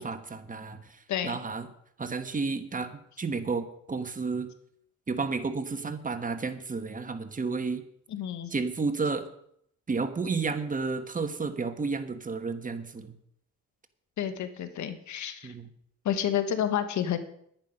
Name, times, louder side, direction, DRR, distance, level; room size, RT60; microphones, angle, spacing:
voice 1, 0.0-1.7 2.0-4.5 5.1-7.8 8.5-9.2 9.9-13.1 15.4-15.7, right 4 dB, 25° right, 8 dB, 1.4 m, -32 dB
voice 2, 8.1-8.5 14.2-15.5 16.0-17.2, left 9 dB, 70° left, 10 dB, 1.3 m, -30 dB
10.5 x 10.5 x 5.3 m, 0.69 s
cardioid pair, 90°, 30 cm